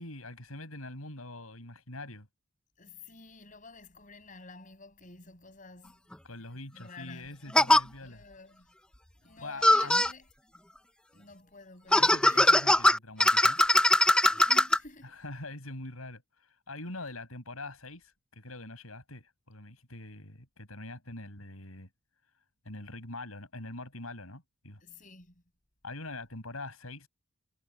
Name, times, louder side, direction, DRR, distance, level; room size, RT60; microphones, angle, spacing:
voice 1, 0.0-2.3 6.2-8.2 9.4-10.0 12.0-13.6 15.0-16.2 16.7-21.9 22.6-24.8 25.8-27.1, left 2 dB, 80° left, 6.9 m, -43 dB
voice 2, 2.8-6.0 6.7-7.4 8.0-8.7 9.2-10.3 11.1-12.7 14.3-15.2 24.8-25.4, left 3 dB, 35° left, 7.1 m, -50 dB
sound 1, 6.1-6.2 7.5-7.8 9.6-10.1 11.9-14.8, left 1 dB, 5° left, 0.6 m, -21 dB
head